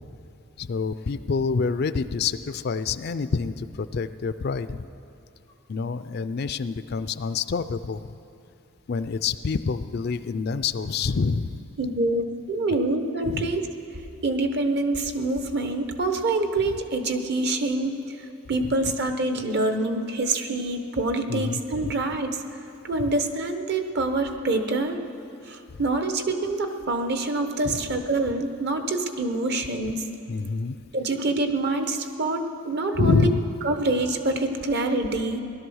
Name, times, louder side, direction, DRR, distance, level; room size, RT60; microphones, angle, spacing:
voice 1, 0.6-4.9 5.7-8.0 8.9-11.6 13.3-13.5 18.8-18.9 21.3-21.9 27.6-27.8 30.3-30.8 33.0-33.4, left 4 dB, 50° left, 13 dB, 0.4 m, -27 dB
voice 2, 11.8-13.7 14.2-18.0 18.5-22.4 22.8-25.0 25.4-30.0 30.9-33.3 33.6-35.4, right 2 dB, 55° right, 7 dB, 1.0 m, -26 dB
17.0 x 12.0 x 6.3 m, 2.7 s
head